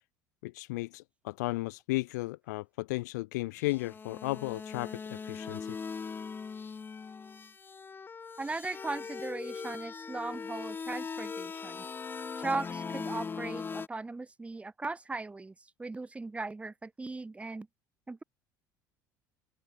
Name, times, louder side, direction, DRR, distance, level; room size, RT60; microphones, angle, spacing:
voice 1, 0.4-5.8, left 21 dB, 65° left, 0.4 m, -34 dB
sound 1, 3.6-13.9, left 5 dB, 20° left, 0.6 m, -40 dB
voice 2, 8.4-11.9 12.4-17.7 18.1-18.2, right 3 dB, 10° right, 0.8 m, -38 dB
open air
figure-of-eight pair, 65°, 10 cm